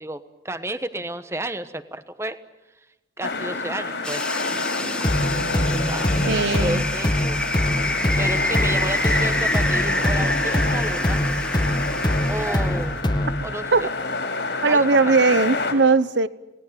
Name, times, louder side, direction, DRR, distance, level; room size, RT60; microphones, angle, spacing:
voice 1, 0.0-2.4 3.2-4.2 5.8-7.4 8.2-11.2 12.3-13.0 13.4-13.9 14.7-15.2, right 1 dB, 15° right, 11 dB, 1.2 m, -32 dB
sound 1, 3.2-15.7, left 3 dB, 85° left, 5.8 m, -28 dB
sound 2, 4.0-13.0, left 1 dB, 5° left, 1.4 m, -28 dB
sound 3, 5.0-13.5, left 1 dB, 25° left, 1.3 m, -24 dB
voice 2, 6.3-6.9 13.7-13.9 14.6-16.3, right 3 dB, 90° right, 16 dB, 1.0 m, -19 dB
28.0 x 19.5 x 9.2 m, 1.1 s
head